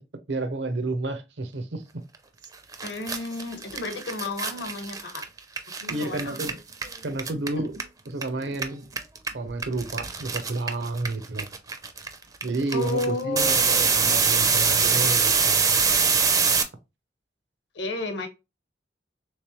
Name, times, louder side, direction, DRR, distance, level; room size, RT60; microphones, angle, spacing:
voice 1, 0.3-1.8 5.8-6.5 7.0-7.7 8.1-8.8 9.3-11.5 12.4-15.8, right 2 dB, 75° right, 0.7 m, -30 dB
sound 1, 2.4-2.5 2.7-8.2 8.5-16.6, right 5 dB, 20° right, 0.4 m, -24 dB
voice 2, 2.8-5.2 5.9-6.4 7.6-7.7 12.7-14.0 17.7-18.3, left 2 dB, 70° left, 0.9 m, -32 dB
3.3 x 3.2 x 2.9 m
head